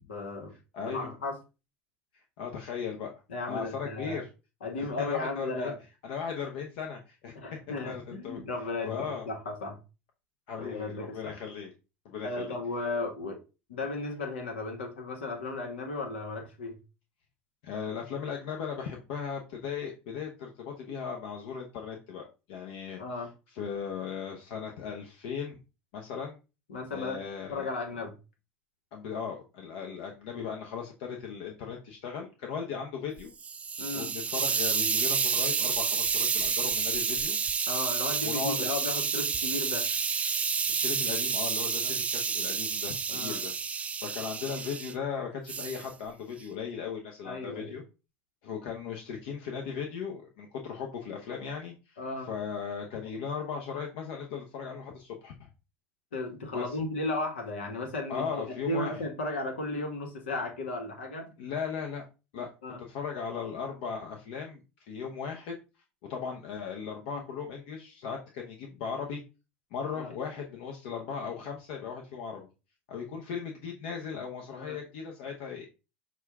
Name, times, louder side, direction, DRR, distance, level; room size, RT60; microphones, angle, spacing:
voice 1, 0.1-0.5 0.9-1.4 3.3-4.2 4.6-5.8 7.3-9.8 10.6-11.3 12.2-13.4 13.7-16.8 23.0-23.3 26.7-27.2 27.5-28.1 33.8-34.1 37.7-39.9 41.8-42.0 43.1-43.4 47.2-47.7 52.0-52.3 56.1-61.3 62.3-62.8 67.1-67.2 69.9-70.1 74.6-74.8, left 2 dB, 85° left, 1.2 m, -35 dB
voice 2, 0.7-1.1 2.4-3.1 3.5-4.3 4.8-5.7 6.0-7.3 7.8-8.4 8.8-9.3 10.5-11.7 12.0-12.5 17.6-23.0 23.6-25.6 25.9-26.4 26.9-27.7 28.9-33.3 33.9-37.4 38.2-38.7 40.7-47.8 48.4-52.0 52.3-55.5 56.5-56.6 58.1-59.0 61.4-62.1 62.3-62.5 62.9-64.6 64.9-65.6 66.1-69.2 69.7-72.5 72.9-75.7, left 6 dB, 70° left, 0.8 m, -37 dB
Hiss, 33.2-44.9 45.5-45.9, right 6 dB, 25° right, 0.3 m, -29 dB
6.0 x 2.4 x 3.5 m
hypercardioid pair, 85°, 6 cm